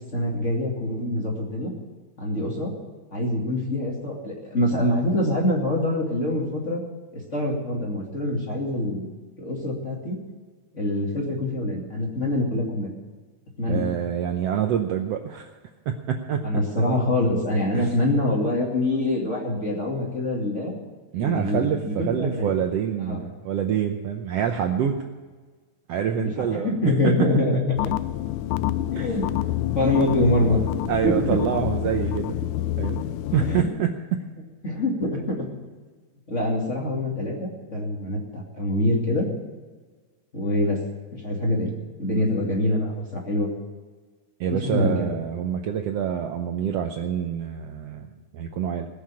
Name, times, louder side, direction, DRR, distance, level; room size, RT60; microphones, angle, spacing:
voice 1, 0.1-1.7 2.2-2.7 3.1-6.8 7.3-9.1 9.4-10.2 10.7-12.9 13.6-13.9 16.4-20.7 21.2-22.5 23.1-23.2 26.2-27.7 28.9-29.3 29.7-30.6 31.0-31.4 33.4-33.7 34.6-35.4 36.3-39.3 40.3-40.8 41.1-41.7 42.0-43.5 44.5-45.1, left 1 dB, 25° left, -2 dB, 2.3 m, -25 dB
voice 2, 13.7-15.5 15.9-16.4 17.7-17.9 21.1-25.0 25.9-26.7 27.0-27.3 29.0-29.1 30.9-32.3 32.8-33.1 33.3-34.2 44.4-48.1 48.3-48.9, right 9 dB, 85° right, 4 dB, 1.4 m, -26 dB
sound 1, 27.8-33.6, left 14 dB, 80° left, 1.8 m, -27 dB
20.0 x 6.7 x 8.6 m, 1.4 s
omnidirectional pair, 3.9 m